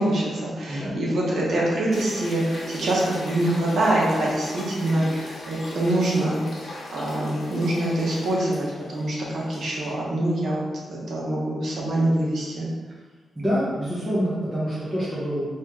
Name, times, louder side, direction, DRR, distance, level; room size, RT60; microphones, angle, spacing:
voice 1, 0.0-10.6 10.9-12.7, right 1 dB, 65° right, -5 dB, 1.0 m, -25 dB
sound 1, 1.9-9.9, left 2 dB, 55° left, 0.7 m, -39 dB
voice 2, 13.3-15.5, equal, 15° right, -10 dB, 0.8 m, -26 dB
3.0 x 2.9 x 3.5 m, 1.5 s
wide cardioid pair, 145°, 0 cm